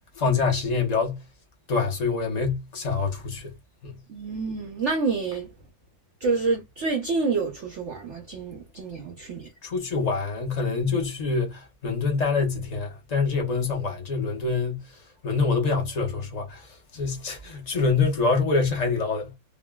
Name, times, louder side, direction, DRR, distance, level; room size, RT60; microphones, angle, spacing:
voice 1, 0.2-1.2 1.7-3.5 3.8-4.0 9.6-14.9 15.2-19.3, left 4 dB, 55° left, 0.4 m, -25 dB
voice 2, 4.1-5.5 6.2-9.5, right 4 dB, 75° right, 0.6 m, -28 dB
3.5 x 2.1 x 2.2 m
omnidirectional pair, 2.0 m